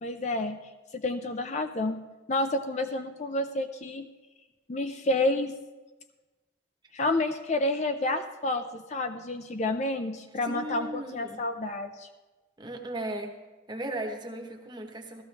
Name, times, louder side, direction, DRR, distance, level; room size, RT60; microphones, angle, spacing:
voice 1, 0.0-0.6 0.9-2.0 2.3-4.1 4.7-5.6 6.9-12.1, left 2 dB, 35° left, 7 dB, 0.5 m, -29 dB
voice 2, 10.5-11.4 12.6-13.3 13.7-15.2, right 1 dB, 20° right, 3 dB, 1.1 m, -36 dB
15.0 x 13.0 x 3.4 m, 1.2 s
head